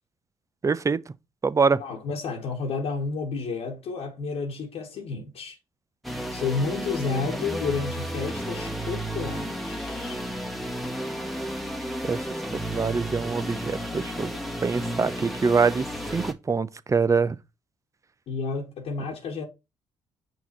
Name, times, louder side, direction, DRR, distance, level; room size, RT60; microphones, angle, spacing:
voice 1, 0.6-1.0 1.4-1.8 12.0-12.2 12.7-14.3 14.6-15.8 16.1-17.4, right 5 dB, 30° right, 0.6 m, -24 dB
voice 2, 1.8-5.6 6.3-10.2 18.3-19.4, left 4 dB, 70° left, 1.4 m, -31 dB
sound 1, 6.0-16.3, equal, ahead, 1.3 m, -32 dB
6.1 x 3.7 x 4.4 m
hypercardioid pair, 55°, 11 cm